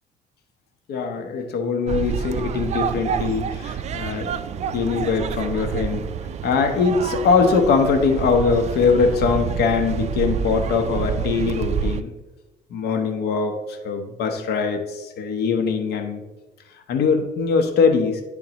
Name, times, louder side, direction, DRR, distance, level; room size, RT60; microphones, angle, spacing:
voice 1, 0.9-4.4 4.7-6.1 6.4-12.1 12.7-16.2 16.9-18.2, left 5 dB, 75° left, 4 dB, 1.0 m, -22 dB
sound 1, 1.9-12.0, right 7 dB, 40° right, 0.3 m, -28 dB
10.5 x 3.7 x 3.0 m, 1.1 s
cardioid pair, 110°, 17 cm